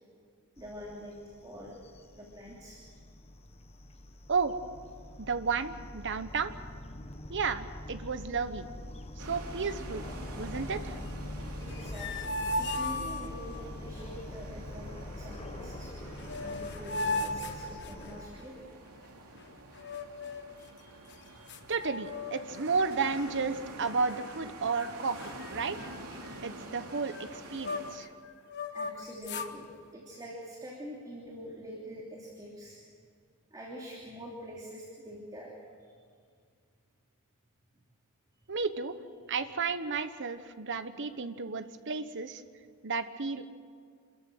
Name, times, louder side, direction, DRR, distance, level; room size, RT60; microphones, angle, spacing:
sound 1, 0.6-18.2, left 1 dB, 30° left, 1.2 m, -44 dB
voice 1, 0.6-1.1 1.4-1.8 2.1-2.8 11.6-14.9 15.2-16.1 16.4-18.5 20.5-21.4 28.7-32.8 33.5-35.5, equal, 20° right, -3 dB, 3.0 m, -45 dB
voice 2, 5.2-6.5 7.3-8.7 9.3-10.0 10.3-11.0 21.7-25.9 26.4-28.1 38.5-38.9 39.3-42.4 42.8-43.5, right 4 dB, 55° right, 11 dB, 1.1 m, -32 dB
sound 2, 9.2-28.0, right 2 dB, 85° right, 2.8 m, -47 dB
sound 3, 11.6-13.6 15.8-15.9 16.2-18.4 19.7-20.6 21.1-21.2 21.5-22.6 22.9-23.2 23.8-24.4 24.7-24.9 25.2-28.1 28.5-29.5, left 2 dB, 50° left, 1.3 m, -37 dB
27.5 x 14.0 x 9.1 m, 2.1 s
head